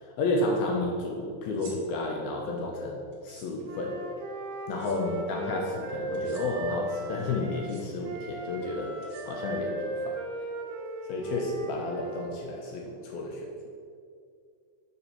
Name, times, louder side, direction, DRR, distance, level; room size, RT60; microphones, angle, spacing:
voice 1, 0.2-4.0 4.7-9.0 9.2-10.2 11.1-13.5, left 2 dB, 75° left, 0 dB, 2.4 m, -31 dB
sound 1, 1.4-1.8 3.1-3.5 4.7-5.0 6.1-6.4 7.5-7.8 9.0-9.6, right 3 dB, 65° right, 1.3 m, -50 dB
Wind instrument woodwind instrument, 3.6-7.7 8.0-12.3, right 1 dB, 85° right, 1.8 m, -37 dB
7.1 x 5.2 x 5.5 m, 2.3 s
omnidirectional pair, 4.9 m